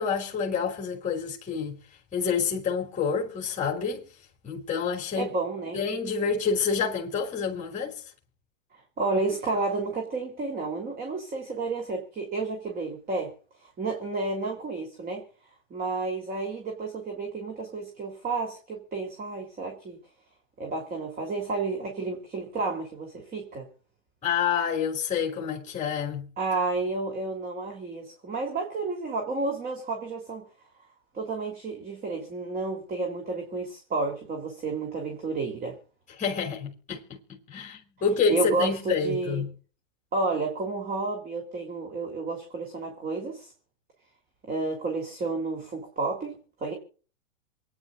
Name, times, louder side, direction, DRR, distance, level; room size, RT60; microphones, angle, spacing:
voice 1, 0.0-1.8 2.1-4.1 4.4-5.3 5.7-8.0 24.2-26.3 36.2-39.5, left 6 dB, 20° left, 3.4 m, -28 dB
voice 2, 5.2-5.8 8.7-13.3 13.6-15.2 15.7-20.0 20.6-23.7 26.4-30.4 31.1-35.8 38.3-39.4 40.1-43.5 44.4-46.7, right 3 dB, 25° right, 3.3 m, -31 dB
28.0 x 9.8 x 2.5 m
hypercardioid pair, 120°, 40 cm